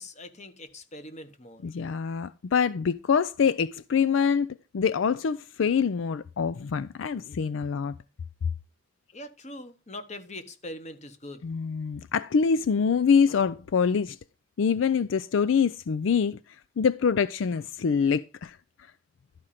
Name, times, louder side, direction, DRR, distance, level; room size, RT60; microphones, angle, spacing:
voice 1, 0.0-1.7 9.1-11.5, left 1 dB, 35° left, 1.2 m, -42 dB
voice 2, 1.6-4.5 4.7-7.9 11.4-14.2 14.6-16.4 16.8-18.6, left 6 dB, 70° left, 0.4 m, -25 dB
12.0 x 5.0 x 5.7 m
head